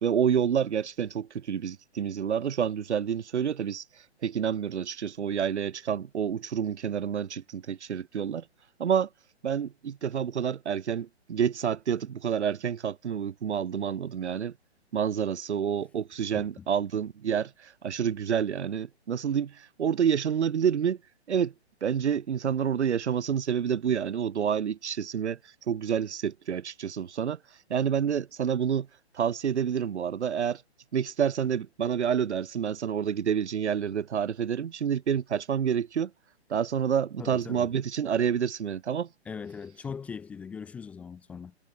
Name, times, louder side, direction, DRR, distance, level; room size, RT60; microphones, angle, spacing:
voice 1, 0.0-3.8 4.2-8.4 8.8-9.1 9.4-14.5 14.9-21.0 21.3-21.5 21.8-25.4 25.7-27.4 27.7-28.9 29.1-30.6 30.9-36.1 36.5-39.1, right 8 dB, 85° right, 0.5 m, -28 dB
voice 2, 16.4-16.7 37.2-37.7 39.3-41.6, left 6 dB, 5° left, 0.5 m, -40 dB
figure-of-eight pair, 130°, 33 cm